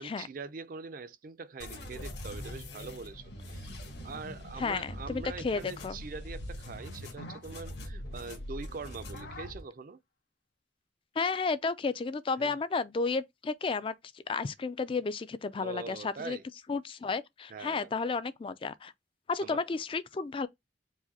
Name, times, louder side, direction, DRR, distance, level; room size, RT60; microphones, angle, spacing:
voice 1, 0.0-3.7 4.0-10.0 12.4-12.6 15.6-16.4 17.5-17.9 19.4-19.6, right 4 dB, 50° right, 0.4 m, -43 dB
sound 1, 1.6-9.6, left 1 dB, 60° left, 1.3 m, -42 dB
voice 2, 4.6-6.0 11.2-16.4 16.7-18.9 19.3-20.5, left 4 dB, 30° left, 0.3 m, -32 dB
4.8 x 2.1 x 4.0 m
head